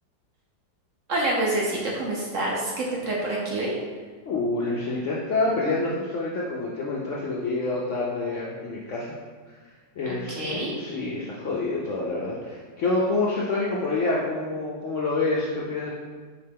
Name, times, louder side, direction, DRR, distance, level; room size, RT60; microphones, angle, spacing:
voice 1, 1.1-3.7 10.1-10.8, right 1 dB, 60° right, -4 dB, 0.9 m, -27 dB
voice 2, 4.3-9.1 10.0-15.9, left 3 dB, 70° left, -4 dB, 0.7 m, -27 dB
4.9 x 3.2 x 3.4 m, 1.5 s
omnidirectional pair, 1.8 m